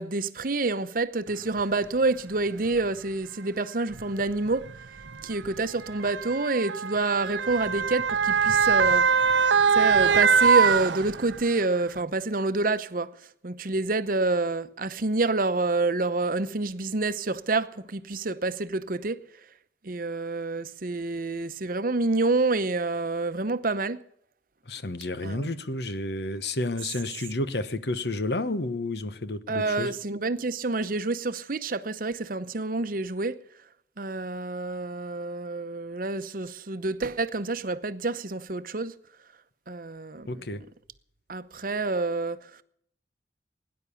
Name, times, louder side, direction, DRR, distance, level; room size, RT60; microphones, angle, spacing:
voice 1, 0.0-4.7 5.2-9.1 9.7-13.1 13.4-19.2 19.8-24.0 25.2-25.5 29.5-33.4 34.0-38.9 39.7-40.4 41.3-42.6, right 3 dB, 50° right, 0.8 m, -28 dB
Motor vehicle (road) / Siren, 1.6-1.7 2.6-2.8 3.9-11.5 12.0-12.1, right 6 dB, 90° right, 0.6 m, -23 dB
voice 2, 24.7-29.9 40.3-40.6, left 2 dB, 70° left, 1.1 m, -31 dB
18.0 x 10.5 x 7.0 m
head